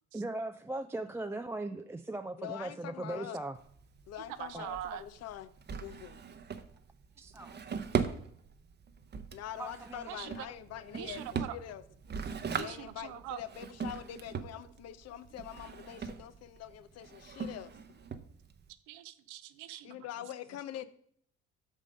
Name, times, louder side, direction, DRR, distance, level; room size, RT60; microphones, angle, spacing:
voice 1, 0.1-3.6 4.5-4.8 7.2-7.6 9.6-10.2, right 2 dB, 10° right, 0.4 m, -39 dB
voice 2, 2.4-3.4 4.1-5.5 5.8-6.2 9.3-11.2 11.5-11.8 12.5-18.1 19.8-20.9, left 11 dB, 50° left, 0.7 m, -44 dB
Drawer open or close, 3.6-18.7, right 6 dB, 35° right, 0.8 m, -40 dB
voice 3, 4.4-5.0 10.1-11.7 12.1-13.4 14.4-14.6 15.1-15.2 18.9-20.0, right 12 dB, 70° right, 0.6 m, -44 dB
6.2 x 5.4 x 5.3 m
hypercardioid pair, 50°, 32 cm